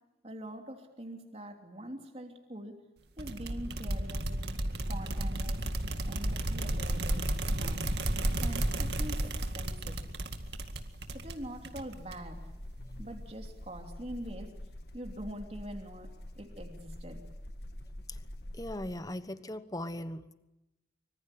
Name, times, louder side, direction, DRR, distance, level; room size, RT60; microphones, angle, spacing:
voice 1, 0.2-2.8 3.2-4.3 4.9-5.6 6.1-7.8 8.4-10.0 11.1-12.4 13.0-14.5 14.9-17.2, right 1 dB, 35° right, 3 dB, 3.1 m, -44 dB
sound 1, 3.2-12.4, right 1 dB, 65° right, 2.1 m, -33 dB
Wing Flap Flutter, 5.5-19.0, left 1 dB, 60° left, 1.7 m, -47 dB
voice 2, 18.6-20.3, left 1 dB, 20° left, 12 dB, 1.2 m, -39 dB
25.0 x 24.5 x 8.6 m, 0.96 s
head